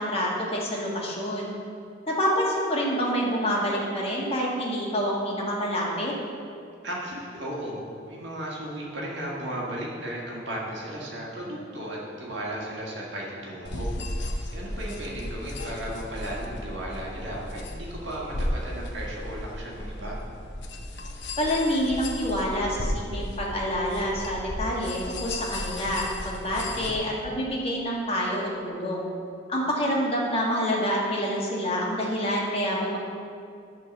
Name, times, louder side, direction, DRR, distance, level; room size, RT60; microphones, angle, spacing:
voice 1, 0.0-1.5 2.1-6.1 21.4-29.1 29.5-33.0, equal, 30° left, -3 dB, 1.6 m, -27 dB
voice 2, 6.8-13.9 14.5-20.2 26.6-26.9, right 1 dB, 65° right, -4 dB, 1.8 m, -35 dB
sound 1, 13.6-26.9, left 1 dB, 65° left, 0.8 m, -35 dB
10.5 x 3.9 x 7.0 m, 2.5 s
head